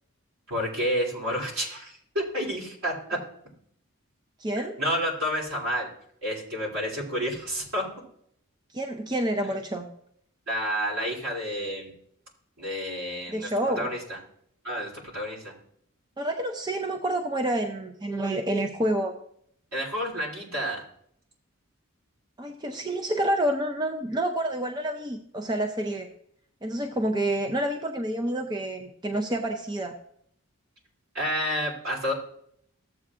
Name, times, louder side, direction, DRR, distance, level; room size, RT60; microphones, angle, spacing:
voice 1, 0.5-3.2 4.5-5.9 6.2-7.8 10.5-11.9 12.6-13.5 13.8-14.2 14.6-15.5 19.7-20.8 31.1-32.1, equal, 75° right, -2 dB, 3.1 m, -30 dB
voice 2, 4.4-4.8 8.7-9.9 13.3-13.9 16.2-19.1 22.4-26.1 26.6-29.9, right 1 dB, 20° right, 5 dB, 0.5 m, -28 dB
14.5 x 7.7 x 2.4 m, 0.68 s
head